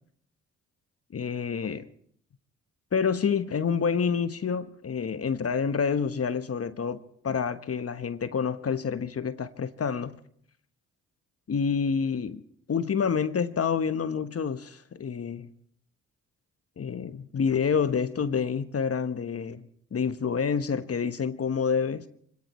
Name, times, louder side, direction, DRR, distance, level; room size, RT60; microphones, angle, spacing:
voice 1, 1.1-1.9 2.9-7.0 7.2-10.2 11.5-12.4 12.7-15.5 16.8-19.6 19.9-22.0, left 6 dB, 40° left, 1.1 m, -28 dB
25.0 x 18.0 x 3.1 m
supercardioid pair, 50°, 35 cm